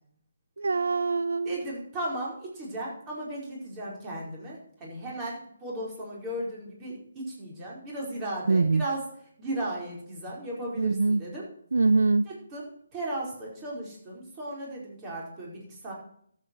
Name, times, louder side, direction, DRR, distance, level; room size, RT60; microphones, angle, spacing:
voice 1, 0.6-1.6 8.5-8.8 10.8-11.2 11.7-12.2, right 3 dB, 80° right, 14 dB, 0.5 m, -23 dB
voice 2, 1.4-9.0 9.4-11.5 12.2-15.9, right 1 dB, 20° right, -4 dB, 4.8 m, -36 dB
13.5 x 8.3 x 4.7 m, 0.64 s
hypercardioid pair, 160°, 0 cm